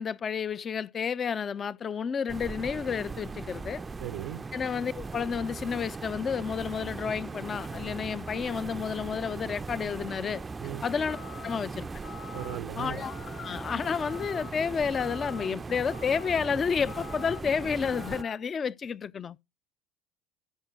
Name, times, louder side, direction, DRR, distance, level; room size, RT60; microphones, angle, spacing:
voice 1, 0.0-3.8 4.5-10.4 10.8-11.2 11.4-11.9 12.8-19.4, left 6 dB, 40° left, 0.5 m, -31 dB
sound 1, 2.3-18.2, right 4 dB, 25° right, 0.4 m, -39 dB
voice 2, 4.0-4.4 10.6-10.8 12.3-13.0, right 14 dB, 75° right, 0.6 m, -37 dB
sound 2, 11.1-11.6 12.0-12.6 13.0-13.5 14.0-14.5 14.9-15.5 15.9-16.4 16.9-17.4 17.8-18.4, left 8 dB, 75° left, 3.0 m, -46 dB
13.0 x 4.9 x 4.0 m
hypercardioid pair, 75°, 0 cm